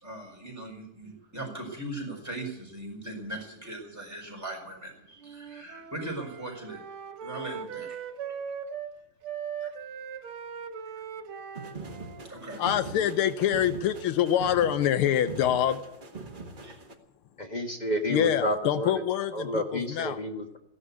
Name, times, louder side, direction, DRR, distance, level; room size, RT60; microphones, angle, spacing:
voice 1, 0.0-6.8 7.2-8.0 9.6-9.7 10.9-11.0 12.3-12.6 16.6-16.7, right 1 dB, 5° right, -2 dB, 4.7 m, -39 dB
Wind instrument woodwind instrument, 5.2-8.9 9.2-13.3, right 7 dB, 85° right, 2.1 m, -40 dB
sound 1, 11.6-16.9, right 3 dB, 25° right, 1.3 m, -42 dB
voice 2, 12.6-15.8 18.1-20.2, left 10 dB, 85° left, 12 dB, 1.7 m, -25 dB
voice 3, 17.4-19.0 19.3-20.6, equal, 25° left, 4 dB, 1.4 m, -30 dB
15.5 x 11.0 x 8.2 m, 0.81 s
omnidirectional pair, 2.3 m